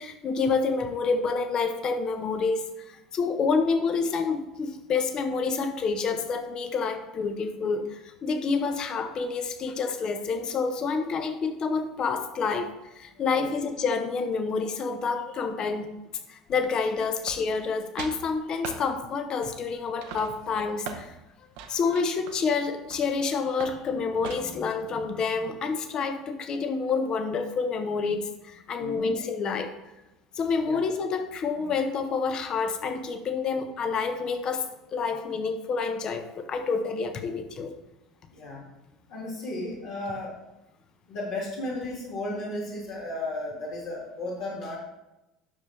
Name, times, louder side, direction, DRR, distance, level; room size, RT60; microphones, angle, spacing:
voice 1, 0.0-12.7 12.9-15.9 16.3-21.2 21.7-29.7 30.3-34.6 34.9-37.7, left 4 dB, 35° left, 7 dB, 1.1 m, -28 dB
sound 1, 17.3-17.7 18.0-18.2 18.6-18.8 19.4-19.7 20.0-21.1 21.5-23.2 23.6-23.8 24.2-24.7, right 6 dB, 55° right, 0.9 m, -40 dB
voice 2, 28.8-29.1 30.6-30.8 38.3-38.6 39.1-40.3 41.1-44.8, left 1 dB, 55° left, -6 dB, 2.1 m, -34 dB
9.6 x 6.8 x 3.4 m, 0.94 s
figure-of-eight pair, 65°, 2 cm